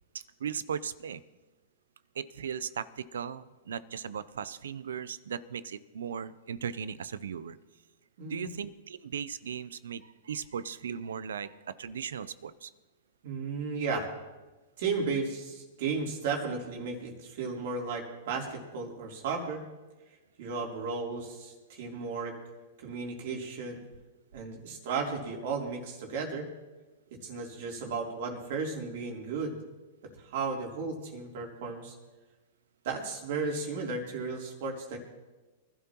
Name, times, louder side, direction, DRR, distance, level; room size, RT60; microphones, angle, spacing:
voice 1, 0.4-1.2 2.1-7.6 8.3-12.7, right 7 dB, 85° right, 16 dB, 0.6 m, -37 dB
voice 2, 8.2-8.5 13.2-14.1 14.8-19.6 20.4-22.4 22.8-23.8 24.3-26.5 27.2-29.6 30.2-32.0 32.8-35.0, right 4 dB, 65° right, 0 dB, 3.3 m, -34 dB
24.0 x 12.0 x 3.0 m, 1.2 s
hypercardioid pair, 125°, 0 cm